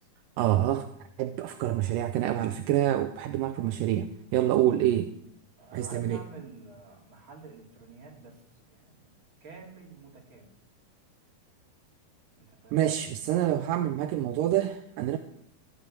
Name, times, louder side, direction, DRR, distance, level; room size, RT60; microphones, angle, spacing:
voice 1, 0.4-0.9 1.2-5.1 5.7-6.2 12.7-15.2, right 12 dB, 80° right, 8 dB, 2.0 m, -27 dB
voice 2, 5.6-9.1 9.4-10.5 12.4-12.8, right 4 dB, 35° right, -1 dB, 3.6 m, -49 dB
15.0 x 6.8 x 8.9 m, 0.72 s
omnidirectional pair, 4.4 m